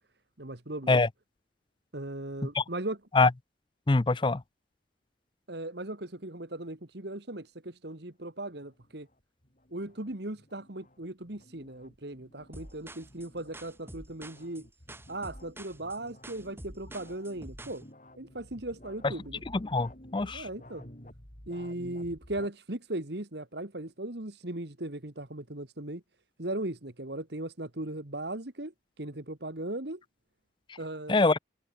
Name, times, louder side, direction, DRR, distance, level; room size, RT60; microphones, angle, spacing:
voice 1, 0.4-1.0 1.9-3.0 5.5-9.1 9.7-14.7 15.1-17.9 18.2-19.4 20.2-20.9 21.5-26.0 26.4-28.7 29.0-30.0 30.8-31.2, right 1 dB, 60° right, 2.0 m, -38 dB
voice 2, 3.9-4.4 19.6-20.5 31.1-31.4, left 3 dB, 25° left, 0.5 m, -24 dB
sound 1, 8.6-22.5, left 1 dB, 40° left, 4.9 m, -53 dB
sound 2, 12.5-17.8, right 1 dB, 10° right, 4.0 m, -47 dB
head